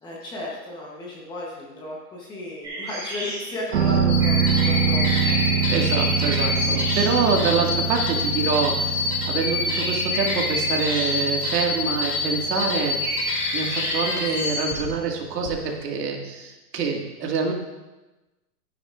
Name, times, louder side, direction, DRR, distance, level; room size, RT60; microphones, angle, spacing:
voice 1, 0.0-5.4, left 1 dB, 10° left, -3 dB, 0.9 m, -34 dB
sound 1, 2.6-7.3 8.8-9.0 9.4-11.5 13.0-14.9, right 1 dB, 10° right, 2.2 m, -32 dB
sound 2, 3.7-15.3 15.6-15.7, right 7 dB, 45° right, 1.2 m, -26 dB
sound 3, 4.1-14.9 15.4-15.5, left 4 dB, 70° left, 2.8 m, -27 dB
voice 2, 5.7-17.5, right 5 dB, 85° right, 1 dB, 2.0 m, -26 dB
12.0 x 9.6 x 2.4 m, 1.1 s
hypercardioid pair, 165°, 47 cm